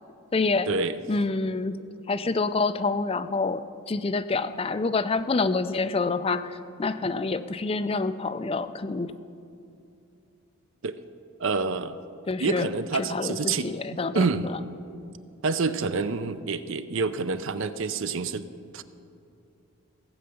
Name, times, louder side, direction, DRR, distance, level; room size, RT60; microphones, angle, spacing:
voice 1, 0.3-0.7 1.1-1.8 2.1-9.1 12.3-12.7 13.1-14.6, left 3 dB, 25° left, 10 dB, 0.4 m, -27 dB
voice 2, 11.4-12.0 12.4-14.5 15.4-18.4 18.7-18.8, right 4 dB, 55° right, 12 dB, 0.5 m, -27 dB
16.5 x 7.7 x 6.9 m, 2.5 s
head